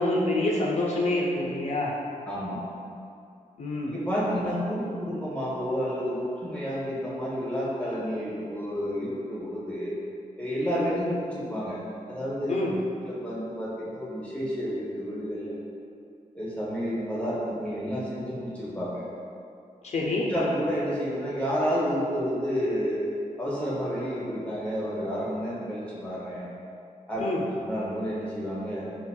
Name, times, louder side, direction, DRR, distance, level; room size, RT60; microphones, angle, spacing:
voice 1, 0.0-1.9 3.6-4.0 12.5-12.8 19.8-20.3 27.2-27.4, left 2 dB, 50° left, -3 dB, 0.4 m, -27 dB
voice 2, 2.3-2.6 3.9-9.9 10.4-11.8 12.1-12.5 13.1-15.6 16.3-19.0 20.3-23.1 23.4-26.5 27.1-27.2 27.6-28.8, equal, 10° left, -8 dB, 0.6 m, -30 dB
4.0 x 2.0 x 2.3 m, 2.5 s
wide cardioid pair, 95°, 14 cm